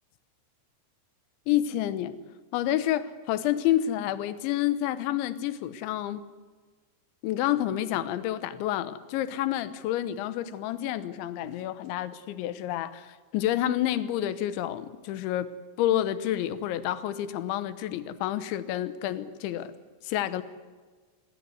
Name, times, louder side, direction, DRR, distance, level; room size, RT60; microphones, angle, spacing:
voice 1, 1.5-2.2 2.5-6.2 7.2-15.5 15.8-19.7 20.0-20.4, left 12 dB, 80° left, 13 dB, 3.5 m, -29 dB
25.5 x 22.0 x 9.6 m, 1.4 s
omnidirectional pair, 5.3 m